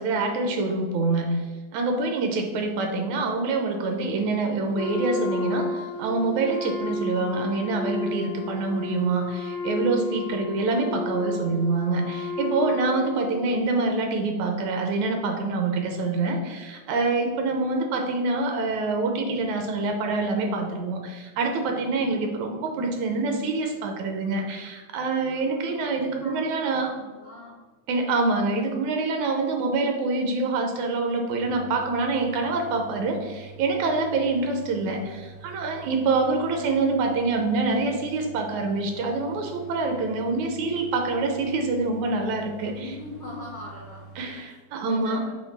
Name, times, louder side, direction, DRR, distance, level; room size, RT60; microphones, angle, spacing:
voice 1, 0.0-1.4 1.7-26.9 27.9-42.9 44.2-45.2, right 3 dB, 75° right, 4 dB, 1.9 m, -26 dB
Wind instrument woodwind instrument, 4.7-13.6, left 2 dB, 90° left, 2.2 m, -32 dB
voice 2, 25.4-26.5 27.0-27.6 42.7-44.3 44.9-45.4, left 2 dB, 65° left, -2 dB, 1.3 m, -41 dB
sound 1, 31.4-44.2, right 4 dB, 90° right, 2.6 m, -46 dB
6.5 x 3.1 x 5.9 m, 1.3 s
omnidirectional pair, 3.6 m